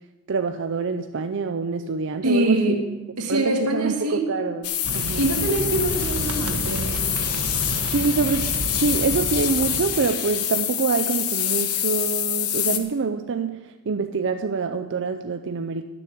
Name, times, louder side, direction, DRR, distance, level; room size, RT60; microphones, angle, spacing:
voice 1, 0.3-2.6 3.3-5.2 7.9-8.5 8.8-15.9, right 4 dB, 55° right, 0.5 m, -26 dB
voice 2, 2.2-4.4 5.2-7.2 12.7-12.8, right 1 dB, 90° right, 1.9 m, -25 dB
sound 1, 4.6-12.8, left 10 dB, 85° left, 1.1 m, -26 dB
sound 2, 4.8-10.1, right 2 dB, 75° right, 1.2 m, -30 dB
11.0 x 6.8 x 8.3 m
head